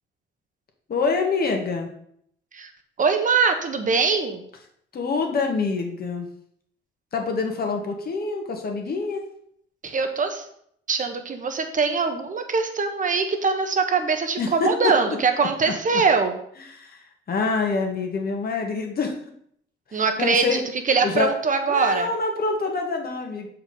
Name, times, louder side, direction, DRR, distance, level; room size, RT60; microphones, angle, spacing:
voice 1, 0.9-1.9 4.9-6.3 7.1-9.2 14.4-14.7 15.4-16.0 16.6-19.1 19.9-20.6 21.0-21.3 21.7-23.5, left 4 dB, 50° left, 2 dB, 1.6 m, -26 dB
voice 2, 3.0-4.4 9.8-10.5 10.9-16.4 19.9-22.1, right 4 dB, 40° right, 6 dB, 1.2 m, -22 dB
6.7 x 4.8 x 5.4 m, 0.68 s
cardioid pair, 90°, 20 cm